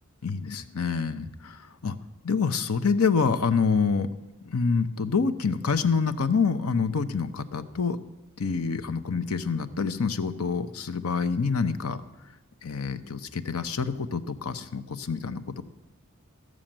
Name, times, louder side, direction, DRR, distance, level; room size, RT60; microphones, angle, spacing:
voice 1, 0.2-2.0 2.2-4.1 4.4-8.0 8.4-12.0 12.6-15.6, left 5 dB, 85° left, 11 dB, 0.8 m, -27 dB
14.5 x 6.4 x 8.9 m, 1.1 s
head